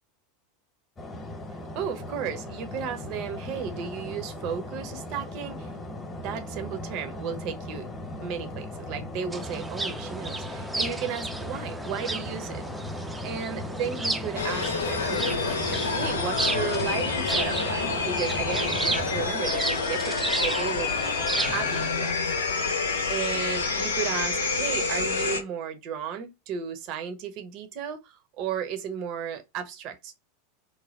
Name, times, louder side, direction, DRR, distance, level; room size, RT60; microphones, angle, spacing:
sound 1, 1.0-19.3, left 1 dB, 20° left, 1.0 m, -37 dB
voice 1, 1.7-5.7 6.1-7.9 8.2-12.6 13.2-15.3 15.9-22.2 23.1-30.2, right 7 dB, 45° right, 0.7 m, -34 dB
sound 2, 9.3-21.9, right 2 dB, 10° right, 0.5 m, -33 dB
sound 3, 14.4-25.4, left 4 dB, 75° left, 0.7 m, -28 dB
3.2 x 2.2 x 4.0 m
figure-of-eight pair, 85°, 0 cm